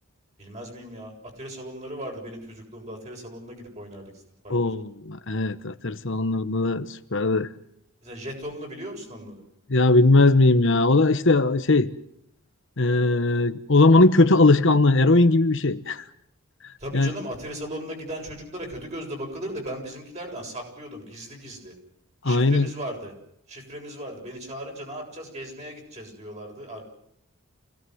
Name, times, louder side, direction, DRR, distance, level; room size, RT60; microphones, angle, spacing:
voice 1, 0.4-4.7 8.0-9.4 16.8-21.8 22.2-23.1 23.5-26.8, equal, 30° right, 7.3 m, -37 dB
voice 2, 4.5-7.5 9.7-11.9 12.8-16.0 16.9-17.1 22.2-22.7, left 2 dB, 55° left, 1.1 m, -19 dB
28.0 x 17.5 x 7.9 m
head